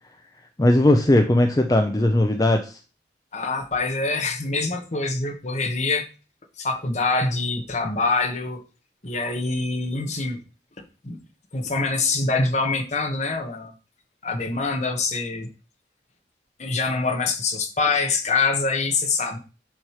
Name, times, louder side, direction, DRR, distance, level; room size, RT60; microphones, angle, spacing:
voice 1, 0.6-2.8, left 1 dB, 20° left, 4 dB, 0.5 m, -18 dB
voice 2, 3.3-6.1 6.6-8.6 9.0-10.4 10.8-11.2 11.5-13.7 14.2-15.5 16.6-19.4, left 3 dB, 40° left, 3 dB, 1.1 m, -25 dB
7.4 x 3.2 x 5.7 m, 0.34 s
head